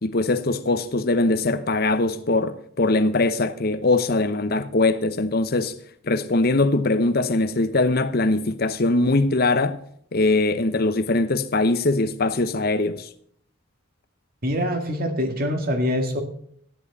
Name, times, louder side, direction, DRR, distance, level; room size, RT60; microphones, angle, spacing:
voice 1, 0.0-5.7 6.0-9.8 10.1-13.1, left 2 dB, 50° left, 0.9 m, -21 dB
voice 2, 14.4-16.2, equal, 50° right, 2.1 m, -24 dB
13.5 x 10.5 x 4.1 m
head